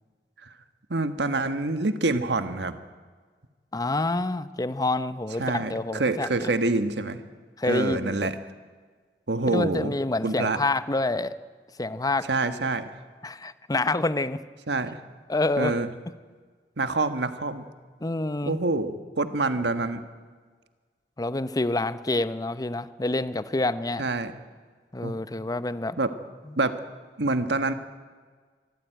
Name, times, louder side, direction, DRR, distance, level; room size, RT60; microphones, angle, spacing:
voice 1, 0.9-2.8 5.4-7.2 7.6-8.4 9.3-9.9 10.2-10.6 12.2-12.9 14.7-15.0 15.6-15.9 16.8-17.7 18.4-20.0 24.0-24.3 25.0-25.2 26.0-26.1 26.6-26.8 27.2-27.7, right 3 dB, 70° right, 10 dB, 1.5 m, -26 dB
voice 2, 3.7-6.5 7.6-8.3 9.5-11.3 11.8-12.3 13.2-14.4 15.3-15.7 18.0-18.6 21.2-24.0 24.9-26.0, left 2 dB, 20° left, 14 dB, 0.7 m, -27 dB
24.5 x 14.5 x 9.1 m, 1.5 s
head